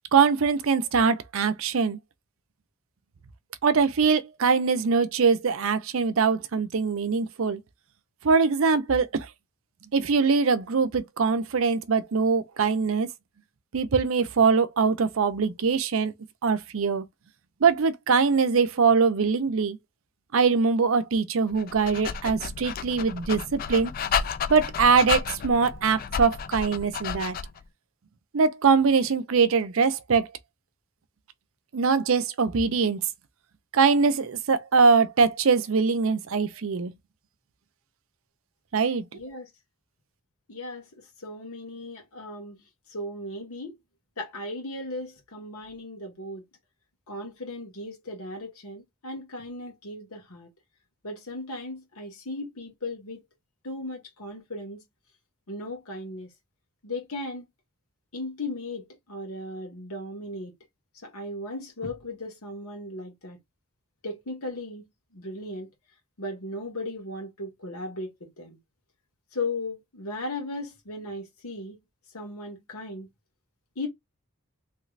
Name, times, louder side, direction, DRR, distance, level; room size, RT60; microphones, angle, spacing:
voice 1, 0.1-2.0 3.6-7.6 8.2-9.3 9.9-13.1 13.7-16.1 16.4-17.1 17.6-19.8 20.3-23.9 24.5-27.4 28.3-30.3 31.7-33.0 33.7-36.9 38.7-39.0, right 5 dB, 65° right, 0.5 m, -22 dB
Dog, 21.5-27.6, left 7 dB, 40° left, 0.3 m, -32 dB
voice 2, 39.1-39.5 40.5-40.9 41.2-42.6 42.9-43.8 44.2-46.4 47.1-50.5 51.0-53.2 53.6-54.8 55.5-56.3 56.8-57.5 58.1-60.5 61.0-63.4 64.0-64.8 65.1-65.7 66.2-68.6 69.3-71.8 72.1-73.1 73.8-73.9, left 2 dB, 85° left, 1.4 m, -36 dB
3.2 x 3.1 x 2.4 m
head